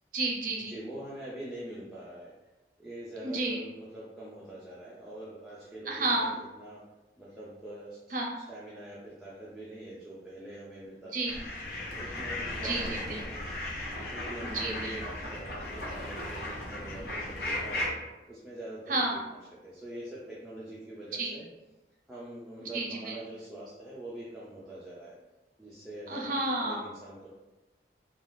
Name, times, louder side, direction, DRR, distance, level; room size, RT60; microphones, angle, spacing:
voice 1, 0.1-0.8 3.2-3.7 5.9-6.4 8.1-8.3 11.1-11.4 12.6-13.2 14.4-15.0 18.9-19.2 21.2-21.3 22.6-23.2 26.1-26.8, right 2 dB, 50° right, 0 dB, 0.5 m, -31 dB
voice 2, 0.7-2.3 2.8-6.8 7.2-8.1 8.5-11.1 11.9-13.3 13.9-18.0 18.3-18.8 19.1-21.5 22.1-25.2 25.6-26.3 26.6-27.3, right 1 dB, ahead, -9 dB, 0.4 m, -44 dB
sound 1, 11.2-17.9, left 1 dB, 60° left, 0.6 m, -36 dB
3.3 x 2.3 x 2.5 m, 1.1 s
head